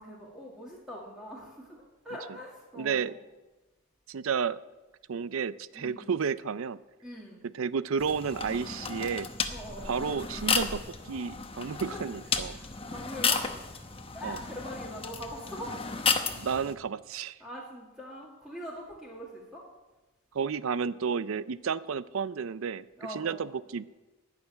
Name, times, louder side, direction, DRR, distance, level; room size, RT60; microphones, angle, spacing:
voice 1, 0.0-3.2 5.7-6.1 7.0-7.5 9.5-9.9 11.7-12.0 12.5-13.9 14.1-15.7 17.4-19.7 23.0-23.5, equal, 5° right, -4 dB, 2.1 m, -43 dB
voice 2, 2.7-3.1 4.1-4.6 5.1-6.8 7.5-9.3 9.8-12.6 14.2-14.4 16.4-17.4 20.3-22.9 23.1-23.8, right 6 dB, 75° right, 17 dB, 0.5 m, -31 dB
sound 1, 8.0-16.7, left 5 dB, 25° left, 0.9 m, -33 dB
15.0 x 6.7 x 9.9 m, 1.1 s
head